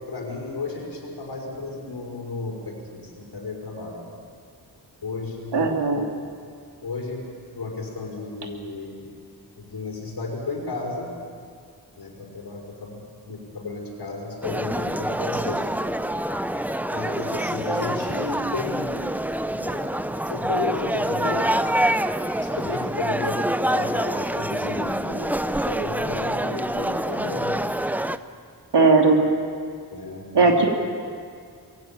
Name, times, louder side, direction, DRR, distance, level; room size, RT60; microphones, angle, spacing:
voice 1, 0.1-4.0 5.0-5.7 6.8-7.3 7.6-9.1 9.6-11.1 12.0-13.0 13.3-15.6 16.9-19.0 19.3-19.9 20.3-21.5 22.4-27.6 29.9-30.5, left 3 dB, 70° left, -1 dB, 5.5 m, -33 dB
voice 2, 5.5-6.1 28.7-29.2 30.3-30.7, right 3 dB, 80° right, 2 dB, 2.9 m, -17 dB
sound 1, 14.4-28.2, right 1 dB, 5° right, 0.6 m, -26 dB
22.5 x 16.0 x 8.7 m, 2.1 s
wide cardioid pair, 90°, 41 cm